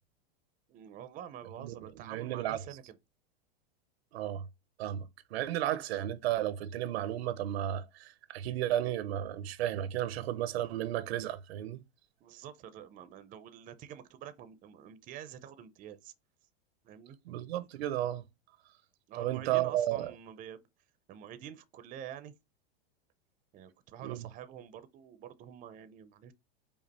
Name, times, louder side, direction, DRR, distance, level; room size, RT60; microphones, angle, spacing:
voice 1, 0.7-3.0 12.2-16.1 16.8-17.2 19.1-20.6 21.1-22.3 23.5-26.3, right 10 dB, 25° right, 0.5 m, -47 dB
voice 2, 2.0-2.6 4.1-4.5 4.8-5.1 5.3-11.8 17.3-18.2 19.2-20.1 24.0-24.3, right 12 dB, 80° right, 0.7 m, -33 dB
5.2 x 2.4 x 4.1 m
supercardioid pair, 130°, 31 cm